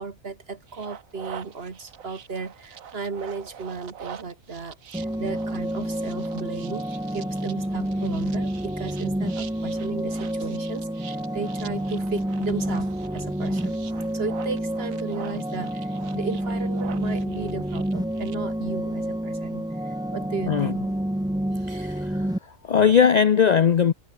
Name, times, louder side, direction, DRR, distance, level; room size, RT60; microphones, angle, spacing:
voice 1, 0.0-13.8 14.1-20.9, right 4 dB, 45° right, 1.9 m, -35 dB
sound 1, 0.7-18.4, right 8 dB, 70° right, 1.6 m, -44 dB
sound 2, 4.9-22.4, right 1 dB, 5° right, 0.6 m, -29 dB
voice 2, 21.7-22.3 22.6-23.9, left 7 dB, 70° left, 0.4 m, -19 dB
omnidirectional pair, 1.5 m